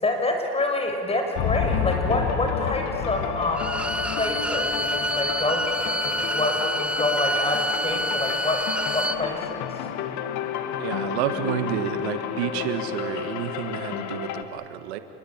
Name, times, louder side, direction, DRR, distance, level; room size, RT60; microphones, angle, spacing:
voice 1, 0.0-3.8 4.2-9.9, left 2 dB, 20° left, 3 dB, 6.4 m, -27 dB
sound 1, 1.4-14.4, left 9 dB, 60° left, 2.1 m, -30 dB
Bowed string instrument, 3.5-9.2, right 1 dB, 5° right, 1.2 m, -27 dB
voice 2, 10.8-15.0, right 11 dB, 85° right, 9 dB, 1.7 m, -30 dB
26.5 x 22.5 x 8.8 m, 2.6 s
supercardioid pair, 95°, 32 cm